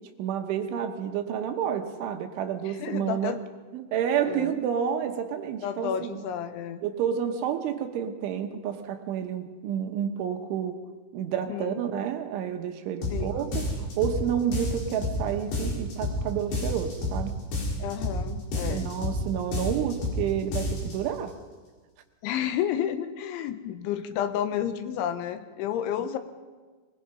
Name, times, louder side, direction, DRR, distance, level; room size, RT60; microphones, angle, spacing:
voice 1, 0.2-3.4 3.7-6.2 6.8-10.8 11.1-17.4 18.7-21.4, right 9 dB, 75° right, 6 dB, 3.5 m, -30 dB
voice 2, 2.7-3.4 4.3-4.6 5.6-6.8 11.5-11.8 13.1-13.4 17.8-18.9 22.2-26.2, left 10 dB, 80° left, 10 dB, 3.1 m, -31 dB
sound 1, 13.0-13.2 13.5-14.2 14.5-15.2 15.5-16.2 16.5-17.2 17.5-18.2 18.5-19.2 19.5-20.2 20.5-21.0, left 2 dB, 55° left, 5.9 m, -29 dB
23.0 x 20.5 x 5.5 m, 1.4 s
omnidirectional pair, 5.7 m